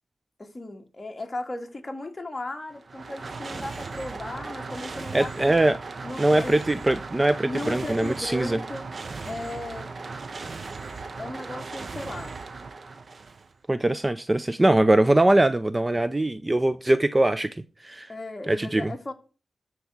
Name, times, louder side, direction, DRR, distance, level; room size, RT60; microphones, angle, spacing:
voice 1, 0.4-5.5 6.0-6.6 7.4-8.9 9.2-9.9 11.2-12.4 18.1-19.1, left 2 dB, 25° left, 2.2 m, -36 dB
sound 1, 2.7-13.6, right 4 dB, 50° right, 0.8 m, -37 dB
voice 2, 5.1-5.8 6.2-8.6 13.7-17.5 17.8-18.1 18.5-18.9, right 1 dB, 20° right, 0.5 m, -22 dB
13.5 x 4.7 x 8.0 m
wide cardioid pair, 110°, 0 cm